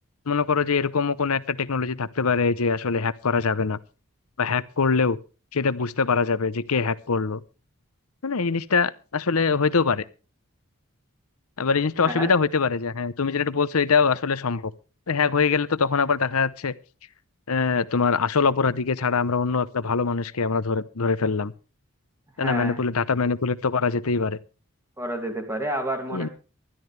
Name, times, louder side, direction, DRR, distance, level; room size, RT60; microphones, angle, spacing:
voice 1, 0.3-3.8 4.4-5.2 5.5-7.4 8.2-10.0 11.6-14.7 15.1-16.7 17.5-21.5 22.4-24.4 26.1-26.3, left 5 dB, 90° left, 0.8 m, -23 dB
voice 2, 22.4-22.8 25.0-26.3, right 1 dB, 10° right, 2.4 m, -29 dB
20.5 x 12.5 x 3.4 m
head